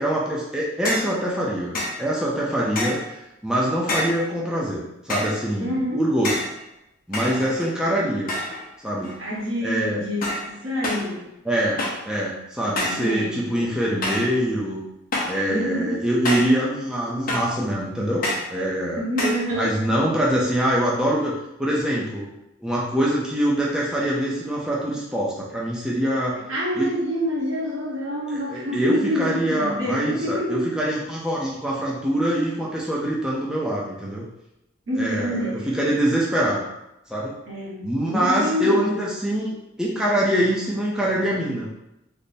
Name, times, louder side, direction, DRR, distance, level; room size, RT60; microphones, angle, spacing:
voice 1, 0.0-6.4 7.1-8.3 8.8-9.2 9.6-10.0 11.5-11.8 12.1-14.8 15.3-18.2 18.5-19.0 19.6-21.3 21.6-22.3 22.6-26.4 26.8-26.9 28.3-34.3 35.0-36.6 37.1-37.4 37.8-41.7, right 1 dB, 5° right, -5 dB, 0.5 m, -24 dB
sound 1, 0.9-1.2 1.7-2.0 2.8-3.1 3.9-4.3 5.1-5.4 6.2-6.6 7.1-7.8 8.3-8.7 9.0-9.4 10.2-10.5 10.8-11.1 11.8-12.1 12.8-13.1 14.0-14.3 15.1-15.4 16.3-16.6 17.3-17.6 18.2-18.5 19.2-19.5, left 1 dB, 45° left, 0.8 m, -27 dB
voice 2, 5.6-6.0 9.2-11.3 12.8-13.7 15.5-16.0 19.0-19.9 26.5-30.7 34.9-35.7 37.5-38.9, equal, 75° right, -6 dB, 1.3 m, -27 dB
3.4 x 2.1 x 4.1 m, 0.86 s
head